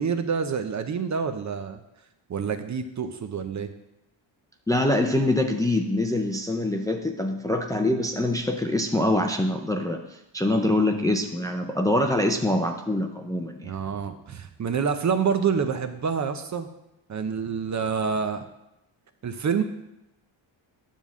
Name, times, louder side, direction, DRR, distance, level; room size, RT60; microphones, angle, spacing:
voice 1, 0.0-1.8 2.3-3.7 13.6-16.7 17.1-18.4 19.2-19.6, right 6 dB, 35° right, 8 dB, 0.6 m, -27 dB
voice 2, 4.7-10.0 10.3-13.7, left 1 dB, 10° left, 3 dB, 0.5 m, -24 dB
10.5 x 3.6 x 7.3 m, 0.90 s
cardioid pair, 130°, 48 cm